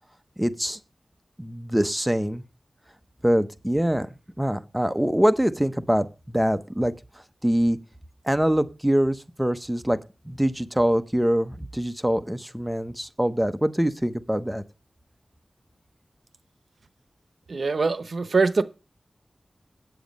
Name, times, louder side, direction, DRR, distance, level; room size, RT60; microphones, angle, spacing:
voice 1, 0.4-0.8 1.4-2.4 3.2-6.9 7.4-7.8 8.2-10.0 10.2-14.6, equal, 5° right, 0.8 m, -24 dB
voice 2, 17.5-18.6, right 4 dB, 75° right, 0.8 m, -23 dB
9.3 x 7.9 x 5.2 m
wide cardioid pair, 90°, 0 cm